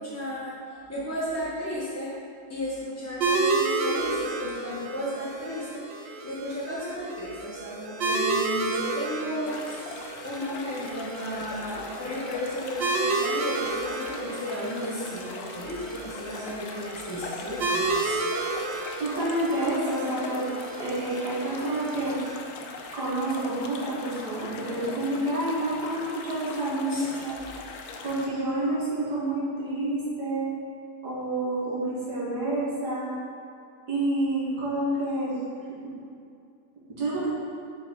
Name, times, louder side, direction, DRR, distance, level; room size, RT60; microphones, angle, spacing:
voice 1, 0.0-2.1 2.5-18.3 26.9-27.0, equal, 15° left, -8 dB, 0.5 m, -34 dB
sound 1, 3.2-22.4, right 3 dB, 65° right, 0.6 m, -31 dB
sound 2, 9.4-28.3, left 4 dB, 70° left, 1.0 m, -41 dB
voice 2, 19.0-20.5 20.8-22.2 22.9-27.4 28.0-30.5 31.0-33.1 33.9-35.3 35.8-35.9 36.9-37.3, right 1 dB, 80° right, -8 dB, 1.9 m, -28 dB
5.5 x 4.7 x 4.4 m, 2.4 s
omnidirectional pair, 1.7 m